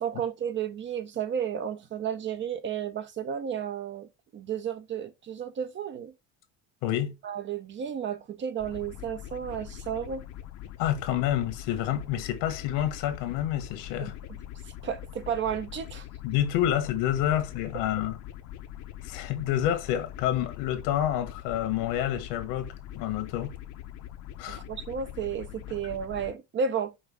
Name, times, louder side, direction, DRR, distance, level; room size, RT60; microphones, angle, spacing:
voice 1, 0.0-6.1 7.2-10.3 14.0-14.1 14.8-16.1 24.5-26.9, right 7 dB, 35° right, 0.6 m, -32 dB
voice 2, 6.8-7.1 10.8-14.1 16.2-18.2 19.0-23.5 24.4-24.6, left 11 dB, 85° left, 1.2 m, -28 dB
sound 1, 8.6-26.3, left 12 dB, 60° left, 0.7 m, -43 dB
5.4 x 2.6 x 3.6 m
cardioid pair, 130°, 33 cm